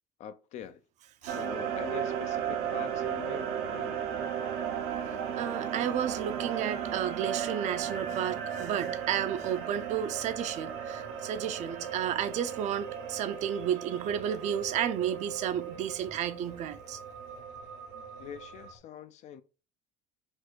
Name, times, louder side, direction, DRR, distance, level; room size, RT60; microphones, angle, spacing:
voice 1, 0.2-0.8 1.2-4.0 17.9-19.4, left 9 dB, 55° left, 0.5 m, -44 dB
sound 1, 1.2-18.8, equal, 80° left, 1.5 m, -57 dB
sound 2, 1.3-18.7, right 8 dB, 85° right, 0.9 m, -36 dB
voice 2, 5.1-17.0, right 9 dB, 55° right, 0.6 m, -32 dB
4.4 x 2.5 x 4.5 m
cardioid pair, 125°, 15 cm